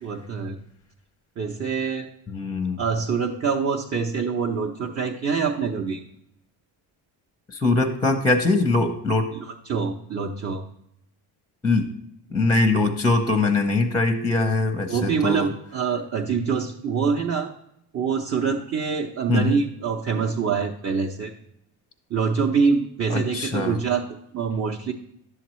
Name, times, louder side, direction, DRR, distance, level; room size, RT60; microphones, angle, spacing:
voice 1, 0.0-0.6 1.4-2.1 2.8-6.0 9.3-10.6 14.9-17.5 17.9-21.3 22.1-24.9, right 5 dB, 30° right, 1 dB, 0.6 m, -25 dB
voice 2, 2.3-2.8 7.5-9.3 11.6-11.9 12.3-15.5 19.3-19.6 23.1-23.8, left 3 dB, 10° left, 6 dB, 0.6 m, -22 dB
11.0 x 7.1 x 3.0 m, 0.79 s
cardioid pair, 125°, 47 cm